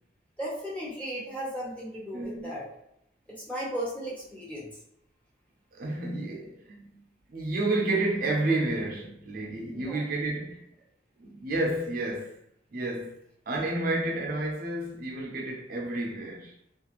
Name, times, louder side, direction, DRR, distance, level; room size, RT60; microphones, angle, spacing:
voice 1, 0.4-2.6 3.5-4.7 9.7-10.0, equal, 10° left, 0.8 m, -35 dB
voice 2, 2.1-2.5 5.7-7.0 7.3-10.6 11.2-12.4 12.7-13.2 13.5-16.5, right 2 dB, 55° right, 0.5 m, -30 dB
2.5 x 2.4 x 2.9 m
head